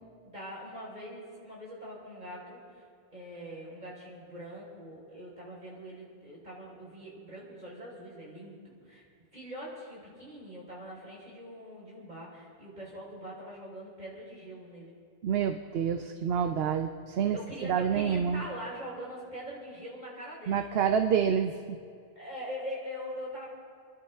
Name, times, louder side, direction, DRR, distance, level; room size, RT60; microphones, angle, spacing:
voice 1, 0.2-2.8 3.1-9.0 9.3-14.9 17.3-20.6 22.1-23.5, equal, 45° right, -5 dB, 4.8 m, -42 dB
voice 2, 15.2-17.4 17.6-18.4 20.5-21.8, right 7 dB, 70° right, 6 dB, 0.9 m, -28 dB
29.0 x 11.5 x 3.6 m, 2.3 s
omnidirectional pair, 1.1 m